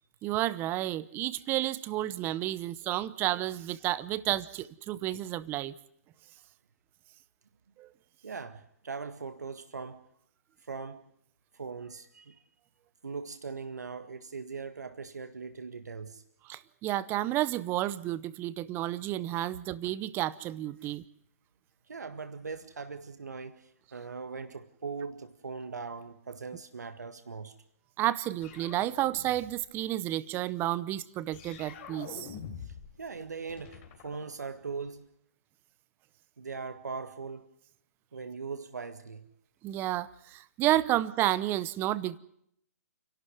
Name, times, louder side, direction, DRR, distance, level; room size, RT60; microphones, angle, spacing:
voice 1, 0.2-5.7 7.8-7.9 16.5-21.0 28.0-32.4 39.6-42.2, right 14 dB, 25° right, 0.9 m, -31 dB
voice 2, 8.2-10.0 10.6-11.0 11.5-12.4 13.0-16.2 20.8-20.9 21.9-27.5 32.6-35.1 36.4-37.5 38.1-39.3, right 5 dB, 85° right, 1.7 m, -40 dB
sound 1, 28.4-29.7 31.3-33.0 33.2-34.9, left 7 dB, 40° left, 3.8 m, -46 dB
29.0 x 12.0 x 9.7 m
hypercardioid pair, 135°, 9 cm